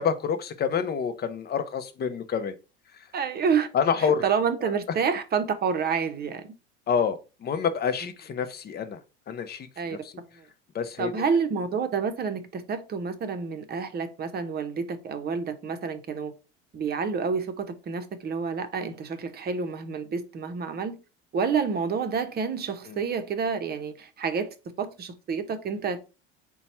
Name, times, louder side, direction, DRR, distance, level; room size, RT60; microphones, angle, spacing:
voice 1, 0.0-2.5 3.7-4.3 4.6-4.7 6.9-9.0 9.3-10.1 10.7-11.1 22.9-23.0, left 7 dB, 35° left, 0.7 m, -28 dB
voice 2, 3.1-3.7 4.0-6.5 9.8-10.0 11.0-16.3 16.7-21.0 21.3-24.5 24.8-26.0, right 6 dB, 30° right, 0.8 m, -28 dB
4.1 x 2.3 x 4.2 m
hypercardioid pair, 85°, 30 cm